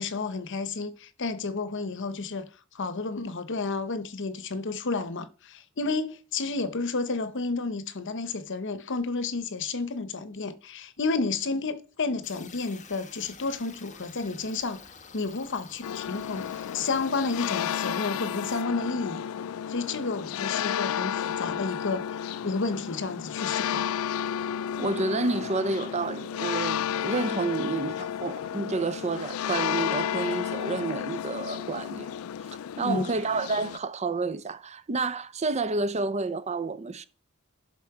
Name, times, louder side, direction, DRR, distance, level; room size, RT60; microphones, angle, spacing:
voice 1, 0.0-2.5 2.7-14.8 15.1-19.2 19.7-23.9 32.8-33.1, left 3 dB, 60° left, 0.9 m, -31 dB
sound 1, 12.2-18.6, left 6 dB, 35° left, 1.1 m, -49 dB
sound 2, 15.8-33.8, left 9 dB, 80° left, 0.3 m, -32 dB
voice 2, 24.8-32.1 32.8-37.0, right 3 dB, 30° right, 0.6 m, -29 dB
11.5 x 4.4 x 4.8 m
head